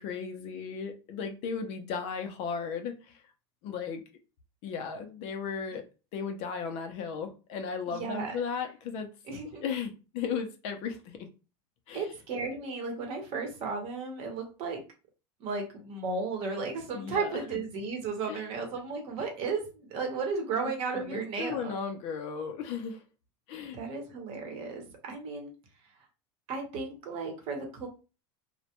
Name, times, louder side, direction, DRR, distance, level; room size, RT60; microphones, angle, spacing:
voice 1, 0.0-3.2 3.6-4.0 4.6-5.8 6.1-9.1 9.5-11.2 11.9-12.1 16.9-17.4 18.3-18.4 20.6-20.7 21.0-23.0 23.5-23.8, left 6 dB, 50° left, 6 dB, 0.5 m, -35 dB
voice 2, 7.9-8.4 9.3-9.7 11.9-14.8 15.4-21.7 23.7-25.5 26.5-27.9, right 4 dB, 45° right, 3 dB, 0.8 m, -34 dB
2.2 x 2.1 x 2.8 m, 0.32 s
supercardioid pair, 145°, 14 cm